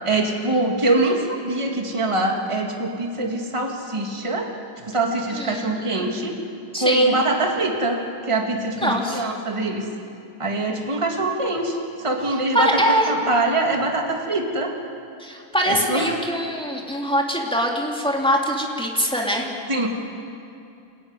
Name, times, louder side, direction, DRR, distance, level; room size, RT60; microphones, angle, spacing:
voice 1, 0.0-4.5 4.9-6.3 6.8-9.9 10.4-14.7 15.7-16.1 19.7-19.9, right 2 dB, 15° right, 1 dB, 2.1 m, -23 dB
voice 2, 5.4-6.1 6.7-7.2 8.8-9.2 12.5-13.1 15.2-19.5, equal, ahead, -1 dB, 2.8 m, -23 dB
28.0 x 15.0 x 9.7 m, 2.6 s
omnidirectional pair, 2.3 m